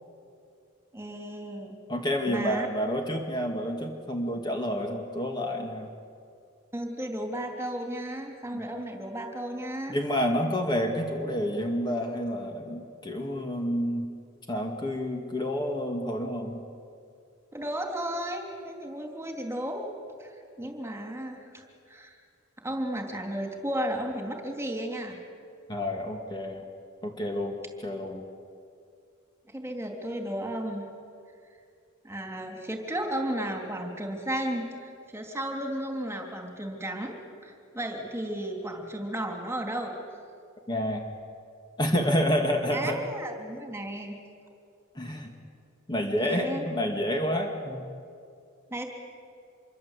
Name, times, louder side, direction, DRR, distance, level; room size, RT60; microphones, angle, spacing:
voice 1, 0.9-1.8 2.3-2.7 6.7-10.0 17.5-19.9 20.2-22.2 22.6-25.2 29.5-30.8 32.0-37.1 37.4-39.9 42.7-44.2 46.2-46.6 48.7-48.9, right 1 dB, 10° right, 3 dB, 3.2 m, -34 dB
voice 2, 1.9-5.9 8.5-8.6 9.9-14.1 14.5-16.6 25.7-26.6 27.0-28.2 40.7-41.0 41.8-43.0 45.0-45.3 45.9-47.8, equal, 20° left, 2 dB, 2.1 m, -29 dB
26.5 x 24.0 x 8.3 m, 2.4 s
head